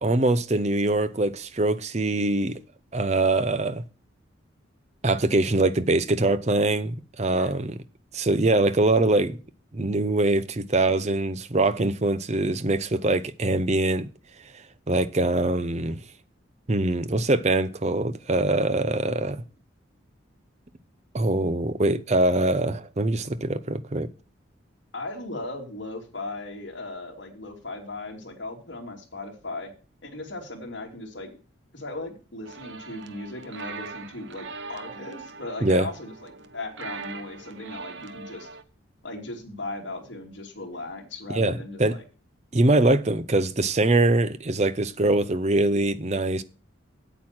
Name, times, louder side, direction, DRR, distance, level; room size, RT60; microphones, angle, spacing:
voice 1, 0.0-2.6 2.9-3.8 5.0-7.8 8.1-9.4 9.7-14.1 14.9-16.0 16.7-19.4 21.1-24.1 35.6-35.9 41.3-42.0 42.5-46.4, right 2 dB, 35° right, 0.6 m, -23 dB
voice 2, 24.9-29.7 30.0-31.4 31.7-38.5 39.0-42.0, left 2 dB, 65° left, 3.0 m, -37 dB
sound 1, 32.4-38.6, right 5 dB, 70° right, 0.9 m, -41 dB
8.6 x 8.2 x 6.0 m
head